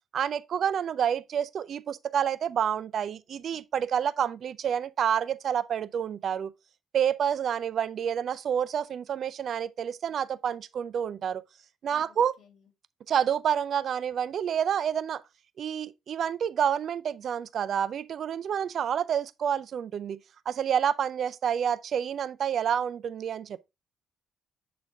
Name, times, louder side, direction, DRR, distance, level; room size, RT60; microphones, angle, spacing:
voice 1, 0.1-6.5 6.9-11.4 11.8-12.3 13.1-15.2 15.6-20.2 20.5-23.6, right 8 dB, 60° right, 0.4 m, -28 dB
voice 2, 11.9-12.7, left 6 dB, 60° left, 2.4 m, -60 dB
7.5 x 4.0 x 3.4 m
cardioid pair, 90°, 0 cm